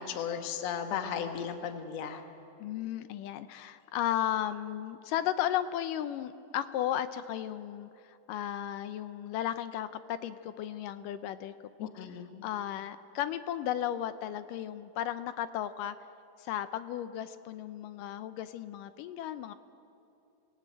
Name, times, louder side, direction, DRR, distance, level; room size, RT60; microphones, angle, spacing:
voice 1, 0.0-2.2 11.8-12.4, left 7 dB, 55° left, 6 dB, 2.3 m, -35 dB
voice 2, 2.6-11.5 11.8-11.9 12.4-16.0 16.4-19.5, left 11 dB, 75° left, 12 dB, 2.0 m, -34 dB
27.5 x 19.5 x 9.0 m, 2.8 s
omnidirectional pair, 4.4 m